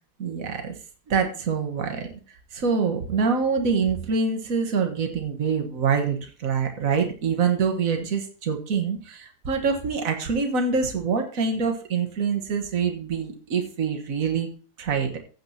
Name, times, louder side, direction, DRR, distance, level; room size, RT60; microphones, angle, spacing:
voice 1, 0.2-0.7 1.1-2.1 2.5-14.5 14.8-15.2, right 5 dB, 60° right, 4 dB, 1.8 m, -25 dB
15.0 x 8.9 x 2.9 m, 0.37 s
omnidirectional pair, 1.7 m